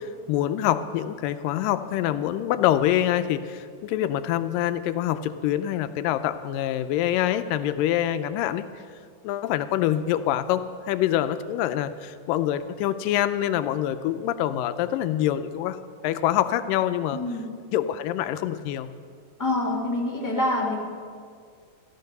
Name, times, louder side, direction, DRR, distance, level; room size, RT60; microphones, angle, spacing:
voice 1, 0.0-8.6 9.2-17.2 17.7-18.9, left 12 dB, 85° left, 11 dB, 2.3 m, -25 dB
voice 2, 17.1-17.4 19.4-20.8, left 1 dB, 5° left, -3 dB, 1.7 m, -26 dB
14.5 x 12.5 x 6.7 m, 2.1 s
omnidirectional pair, 3.9 m